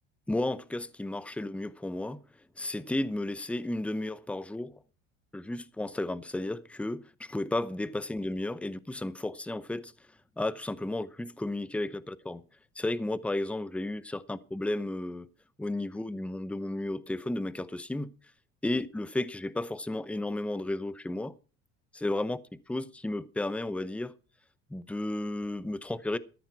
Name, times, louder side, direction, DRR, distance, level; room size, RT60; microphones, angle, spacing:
voice 1, 0.3-2.2 2.6-4.8 5.3-9.9 10.4-12.4 12.8-15.3 15.6-18.1 18.6-21.3 21.9-22.4 22.7-24.1 24.7-26.2, left 2 dB, 5° left, 0.8 m, -33 dB
13.5 x 11.0 x 4.7 m
supercardioid pair, 85°, 36 cm